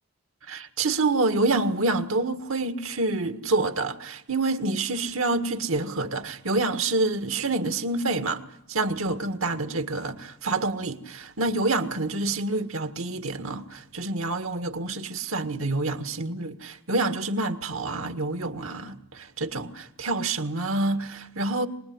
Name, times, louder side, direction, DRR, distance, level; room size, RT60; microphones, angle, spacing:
voice 1, 0.5-8.4 8.7-21.7, right 2 dB, 85° right, 1.7 m, -27 dB
24.5 x 21.0 x 9.5 m
head